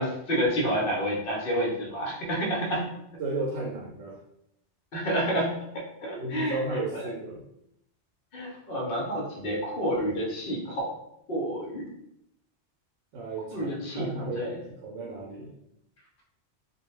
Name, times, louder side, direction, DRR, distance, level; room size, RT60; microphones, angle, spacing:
voice 1, 0.0-2.9 4.9-7.1 8.3-10.9 11.3-11.9 13.5-14.6, equal, 55° left, -2 dB, 0.8 m, -29 dB
voice 2, 3.2-4.2 6.2-7.4 13.1-14.4 14.7-15.5, right 2 dB, 75° right, -3 dB, 0.8 m, -34 dB
2.2 x 2.2 x 3.1 m, 0.79 s
omnidirectional pair, 1.2 m